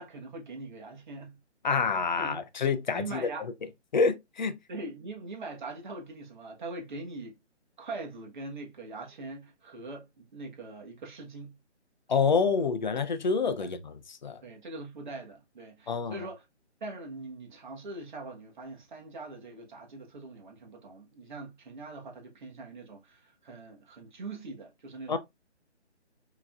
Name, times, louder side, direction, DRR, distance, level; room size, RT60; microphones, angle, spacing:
voice 1, 0.0-1.4 2.2-2.4 2.9-3.5 4.7-7.4 7.8-11.6 12.6-12.7 13.6-13.7 14.4-16.4 16.8-25.2, right 2 dB, 40° right, 1.4 m, -42 dB
voice 2, 1.6-3.3 3.9-4.6 12.1-14.4 15.9-16.3 25.1-25.2, left 5 dB, 40° left, 0.6 m, -27 dB
5.1 x 3.0 x 2.4 m
figure-of-eight pair, 155°, 35 cm